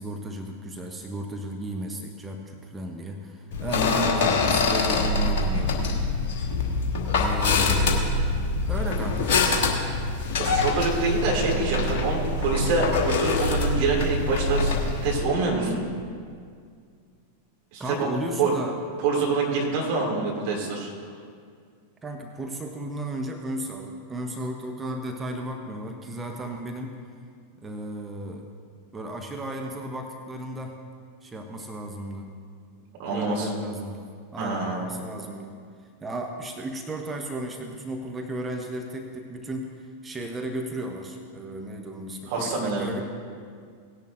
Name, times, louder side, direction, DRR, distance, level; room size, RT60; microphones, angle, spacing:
voice 1, 0.0-6.0 7.1-8.1 8.7-9.6 17.8-18.7 22.0-27.0 27.6-28.5 28.9-30.8 31.2-32.3 33.1-35.6 36.0-43.0, right 1 dB, 15° right, 3 dB, 0.8 m, -34 dB
sound 1, 3.5-15.2, left 3 dB, 50° left, 1.3 m, -24 dB
voice 2, 10.4-14.7 15.0-15.8 17.7-18.1 18.4-18.5 19.0-20.9 33.0-33.5 34.4-34.8 42.3-43.0, right 3 dB, 45° right, -2 dB, 2.5 m, -26 dB
17.5 x 10.5 x 2.6 m, 2.1 s
figure-of-eight pair, 90°, 0 cm